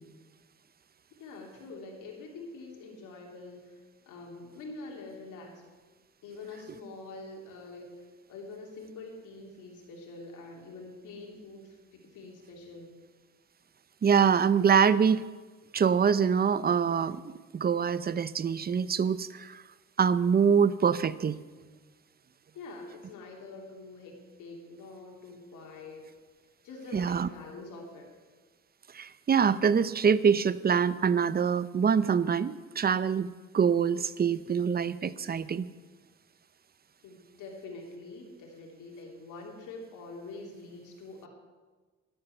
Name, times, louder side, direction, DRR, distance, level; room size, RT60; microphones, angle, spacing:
voice 1, 1.2-5.6 6.2-12.9 22.5-26.0 26.6-28.1 37.0-41.3, left 3 dB, 85° left, 0 dB, 3.2 m, -45 dB
voice 2, 14.0-15.3 15.7-19.6 20.0-21.4 26.9-27.3 28.9-35.7, right 6 dB, 30° right, 16 dB, 0.6 m, -25 dB
12.0 x 11.5 x 6.8 m, 1.4 s
cardioid pair, 90°, 30 cm